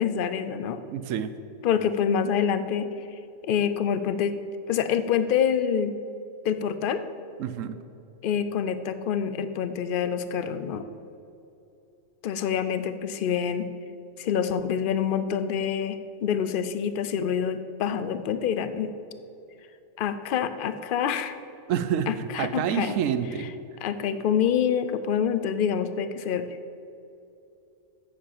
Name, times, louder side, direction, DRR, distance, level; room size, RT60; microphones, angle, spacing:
voice 1, 0.0-0.8 1.6-2.9 3.4-4.4 4.7-5.9 6.4-7.0 8.2-10.9 12.2-13.7 14.2-18.9 20.0-21.4 22.1-23.0 23.8-26.5, left 8 dB, 55° left, 11 dB, 0.6 m, -26 dB
voice 2, 0.9-1.3 7.4-7.8 21.7-23.5, right 8 dB, 85° right, 12 dB, 1.0 m, -28 dB
8.6 x 7.4 x 7.2 m, 2.8 s
omnidirectional pair, 1.3 m